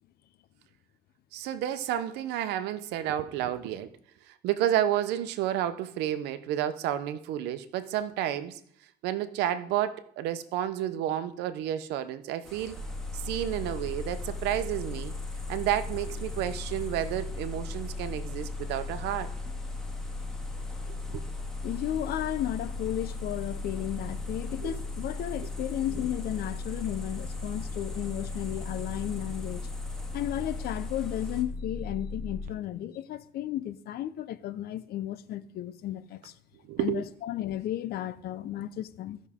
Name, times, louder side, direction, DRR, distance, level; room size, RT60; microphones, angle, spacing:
voice 1, 1.3-3.9 4.3-8.6 9.0-12.8 13.1-15.1 15.5-19.3 21.1-21.2 24.6-24.8 36.6-37.0, right 11 dB, 90° right, 0.8 m, -31 dB
sound 1, 12.4-31.4, left 1 dB, 5° left, 2.1 m, -47 dB
sound 2, 12.8-32.5, left 3 dB, 55° right, 1.0 m, -37 dB
voice 2, 21.6-29.7 30.1-36.3 36.8-39.2, left 12 dB, 65° left, 0.7 m, -34 dB
15.5 x 6.2 x 3.6 m
cardioid pair, 110°, 17 cm